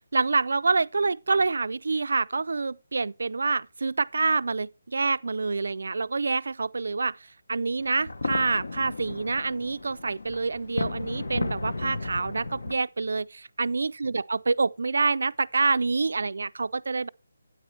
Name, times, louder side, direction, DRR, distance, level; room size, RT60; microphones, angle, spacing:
voice 1, 0.1-7.2 7.5-17.1, right 4 dB, 60° right, 0.4 m, -27 dB
sound 1, 7.8-12.7, left 3 dB, 85° left, 1.6 m, -34 dB
12.5 x 9.4 x 3.2 m
hypercardioid pair, 180°, 0 cm